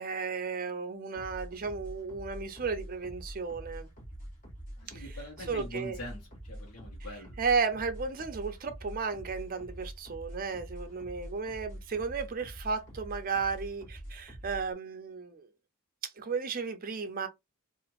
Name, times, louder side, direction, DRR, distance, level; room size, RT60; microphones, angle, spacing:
voice 1, 0.0-3.9 4.9-5.0 5.5-6.0 7.4-15.5 16.2-17.3, right 5 dB, 40° right, 0.5 m, -34 dB
sound 1, 1.1-14.7, equal, 40° left, 1.5 m, -45 dB
voice 2, 4.8-7.4, left 1 dB, 75° left, 1.1 m, -44 dB
2.8 x 2.5 x 2.9 m
head